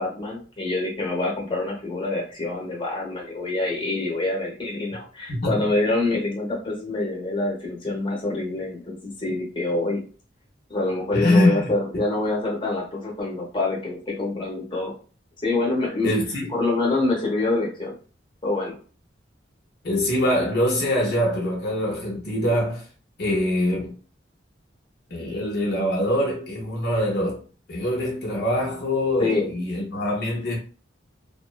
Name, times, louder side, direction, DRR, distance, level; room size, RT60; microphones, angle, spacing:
voice 1, 0.0-10.0 10.7-14.9 15.4-16.1 16.5-17.9 18.4-18.8 29.2-29.5, left 2 dB, 25° left, 0.8 m, -26 dB
voice 2, 11.1-11.7 16.0-16.5 19.8-22.9 23.2-23.9 25.1-27.4 27.7-30.6, left 1 dB, 55° left, 0.6 m, -23 dB
2.6 x 2.1 x 2.2 m
head